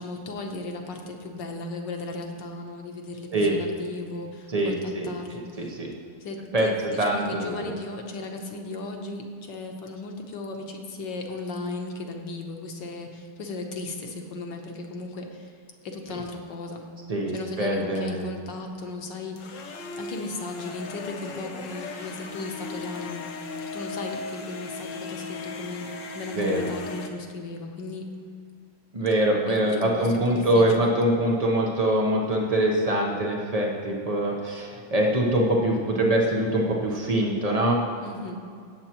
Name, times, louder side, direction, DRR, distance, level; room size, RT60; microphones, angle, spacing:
voice 1, 0.0-5.8 6.2-15.5 15.8-16.9 17.3-19.6 19.9-28.1 29.5-30.9 38.0-38.4, left 2 dB, 65° left, 3 dB, 1.5 m, -36 dB
voice 2, 4.5-5.9 6.5-7.7 17.1-18.2 26.3-26.7 28.9-37.8, right 1 dB, 70° right, -1 dB, 0.3 m, -24 dB
sound 1, 19.4-27.1, left 3 dB, 85° left, 0.7 m, -37 dB
17.5 x 7.4 x 3.0 m, 2.3 s
omnidirectional pair, 2.3 m